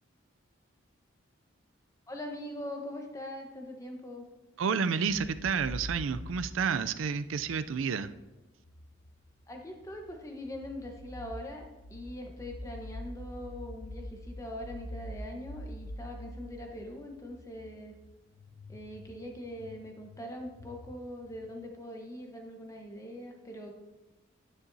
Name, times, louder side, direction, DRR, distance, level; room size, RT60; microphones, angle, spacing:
voice 1, 2.1-4.3 9.5-18.0 18.7-23.7, left 1 dB, 15° left, 2 dB, 1.0 m, -42 dB
voice 2, 4.6-8.1, right 6 dB, 85° right, 12 dB, 0.4 m, -30 dB
sound 1, 5.1-8.1 8.6-21.7, left 1 dB, 65° left, 0.6 m, -45 dB
9.9 x 9.8 x 2.7 m, 1.1 s
head